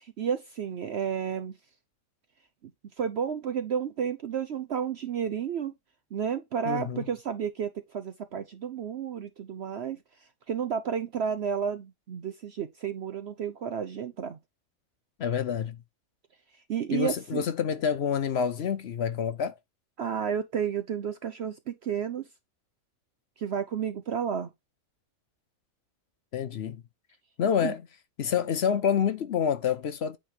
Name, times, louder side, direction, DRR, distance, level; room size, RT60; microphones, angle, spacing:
voice 1, 0.0-1.6 2.6-2.7 3.0-5.7 6.1-10.0 10.5-14.4 16.7-17.4 20.0-22.3 23.4-24.5 27.6-27.7, right 7 dB, 60° right, 0.8 m, -31 dB
voice 2, 6.6-7.0 15.2-15.8 16.9-19.5 26.3-26.8 27.4-27.8 28.2-30.2, left 7 dB, 60° left, 0.8 m, -27 dB
8.9 x 3.2 x 5.7 m
omnidirectional pair, 1.5 m